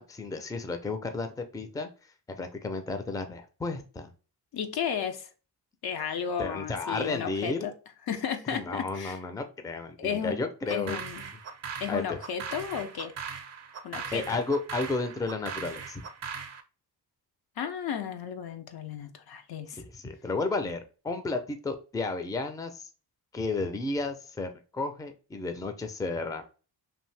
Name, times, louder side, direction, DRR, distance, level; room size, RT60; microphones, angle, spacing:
voice 1, 0.0-1.9 2.3-4.1 6.4-7.7 8.5-11.0 11.9-12.2 14.1-16.0 19.7-22.9 23.3-26.4, left 3 dB, 10° left, 0.4 m, -33 dB
voice 2, 4.5-5.3 5.8-7.7 8.1-9.2 10.0-11.2 11.8-13.1 13.8-14.4 17.6-19.8, left 8 dB, 65° left, 0.6 m, -33 dB
sound 1, 10.7-16.6, right 6 dB, 40° right, 0.5 m, -39 dB
2.7 x 2.6 x 3.2 m
cardioid pair, 80°, 40 cm